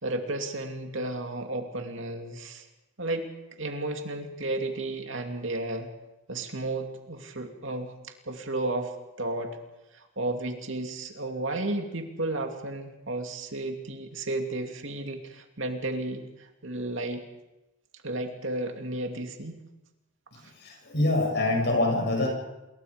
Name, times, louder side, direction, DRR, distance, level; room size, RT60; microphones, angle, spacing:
voice 1, 0.0-2.7 3.0-3.3 3.6-5.9 6.3-7.9 8.3-8.9 9.2-9.6 9.9-17.2 18.0-19.6, right 2 dB, 65° right, 4 dB, 2.7 m, -33 dB
voice 2, 20.6-22.3, left 2 dB, 50° left, 2 dB, 8.0 m, -25 dB
28.0 x 22.0 x 5.2 m, 0.98 s
head